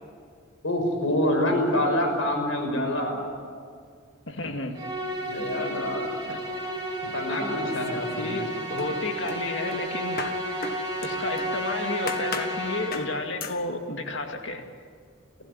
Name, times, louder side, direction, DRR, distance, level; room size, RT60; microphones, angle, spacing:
voice 1, 0.6-3.2 5.2-6.1 7.1-8.3, left 1 dB, 80° left, 4 dB, 6.0 m, -26 dB
voice 2, 4.3-4.9 6.3-6.4 8.2-10.2 11.0-14.6, left 2 dB, 65° left, 4 dB, 2.4 m, -32 dB
Musical instrument, 4.7-13.3, equal, 20° right, 4.5 m, -32 dB
sound 1, 7.7-8.4 8.8-11.6 12.1-12.6 12.9-13.1 13.4-13.6, left 4 dB, 45° left, 1.7 m, -37 dB
29.0 x 15.5 x 9.8 m, 2.1 s
head